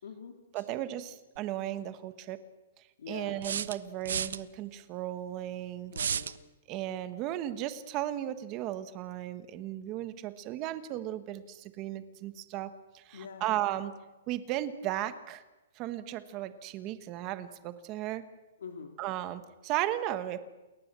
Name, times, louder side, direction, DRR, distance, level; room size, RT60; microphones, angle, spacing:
voice 1, 0.0-0.8 3.0-3.4 5.9-6.3 13.1-13.5 18.6-18.9, left 6 dB, 90° left, 5 dB, 3.2 m, -44 dB
voice 2, 0.5-2.4 3.1-5.9 6.7-13.9 14.3-15.4 15.8-18.2 19.0-20.4, right 13 dB, 20° right, 12 dB, 1.4 m, -35 dB
sound 1, 1.4-1.5 3.4-4.4 5.9-6.4, right 7 dB, 85° right, 1.0 m, -32 dB
29.0 x 22.0 x 7.6 m, 1.1 s
hypercardioid pair, 180°, 0 cm